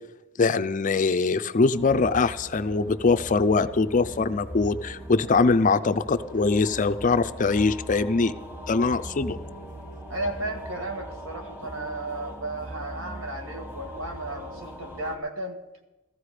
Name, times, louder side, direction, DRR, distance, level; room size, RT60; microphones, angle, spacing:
voice 1, 0.4-8.3 8.7-9.4, left 4 dB, 40° left, 11 dB, 0.5 m, -22 dB
sound 1, 1.7-15.2, equal, 10° right, 1.4 m, -40 dB
voice 2, 10.1-15.6, right 2 dB, 70° right, 4 dB, 1.8 m, -34 dB
15.0 x 14.5 x 4.9 m, 1.0 s
head